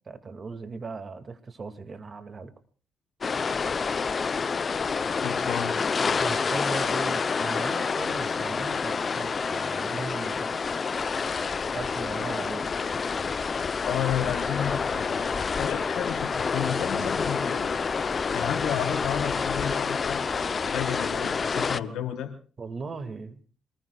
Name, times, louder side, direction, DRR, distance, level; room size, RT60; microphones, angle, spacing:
voice 1, 0.1-2.5 6.1-10.6 11.2-12.7 22.6-23.4, right 4 dB, 40° right, 8 dB, 2.2 m, -38 dB
sound 1, 3.2-21.8, left 5 dB, 40° left, 0.7 m, -28 dB
voice 2, 5.2-5.7 13.8-17.7 18.3-22.3, left 9 dB, 80° left, 3 dB, 3.6 m, -32 dB
26.5 x 20.0 x 2.4 m, 0.39 s
cardioid pair, 90°, 0 cm